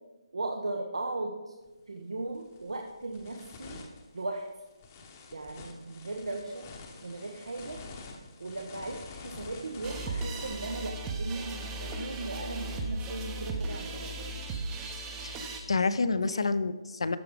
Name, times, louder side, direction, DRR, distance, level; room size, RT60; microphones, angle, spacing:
voice 1, 0.3-1.4 1.9-3.8 4.1-4.4 5.3-6.6 7.0-7.8 8.4-14.1 16.2-16.5, right 2 dB, 80° right, 2 dB, 0.9 m, -37 dB
sound 1, 1.6-1.8 2.3-10.5, left 4 dB, 25° left, 0.9 m, -47 dB
sound 2, 9.8-15.6, right 2 dB, 15° right, 0.7 m, -36 dB
voice 2, 15.2-17.2, left 4 dB, 70° left, 13 dB, 0.6 m, -29 dB
13.0 x 4.7 x 3.7 m, 1.1 s
figure-of-eight pair, 160°, 3 cm